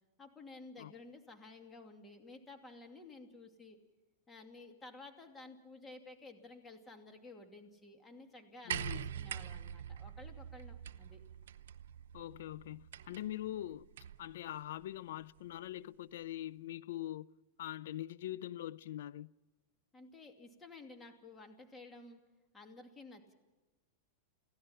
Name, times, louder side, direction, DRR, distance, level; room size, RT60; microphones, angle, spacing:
voice 1, 0.2-3.8 4.3-11.2 19.9-22.2 22.5-23.3, left 3 dB, 15° left, 2.6 m, -53 dB
voice 2, 8.6-9.1 12.1-13.9 14.2-17.3 17.6-19.3, left 13 dB, 75° left, 0.6 m, -43 dB
sound 1, 8.7-14.3 15.4-15.5, right 9 dB, 80° right, 0.8 m, -44 dB
28.5 x 16.5 x 5.9 m
hypercardioid pair, 125°, 0 cm